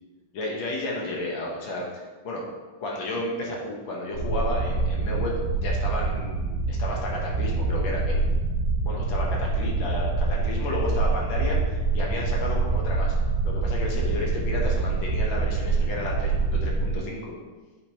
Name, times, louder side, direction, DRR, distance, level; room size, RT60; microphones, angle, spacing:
voice 1, 0.3-2.4 2.8-8.2 8.8-13.1 13.4-17.4, left 2 dB, 55° left, -2 dB, 1.5 m, -32 dB
sound 1, 4.1-17.0, right 3 dB, 85° right, 2.6 m, -25 dB
10.5 x 5.2 x 2.9 m, 1.3 s
omnidirectional pair, 3.6 m